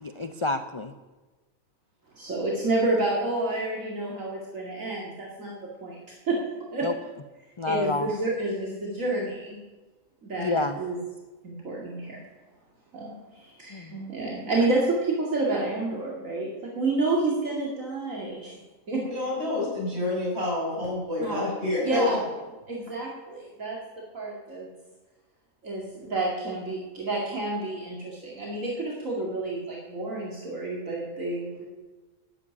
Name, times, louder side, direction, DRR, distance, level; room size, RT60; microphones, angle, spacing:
voice 1, 0.0-0.9 6.8-6.9 7.6-8.1 10.4-10.8 13.7-14.0, left 3 dB, 45° left, 9 dB, 0.4 m, -28 dB
voice 2, 2.1-5.5 5.8-6.0 6.3-6.4 6.7-6.9 7.6-9.6 10.2-11.0 11.4-12.2 12.9-18.6 18.9-19.0 21.2-21.4 21.8-22.2 22.7-23.8 24.1-24.7 25.6-31.7, right 2 dB, 65° right, -3 dB, 2.6 m, -29 dB
voice 3, 19.0-22.0, left 2 dB, 45° right, -4 dB, 6.8 m, -28 dB
11.5 x 8.6 x 9.8 m, 1.2 s
omnidirectional pair, 1.5 m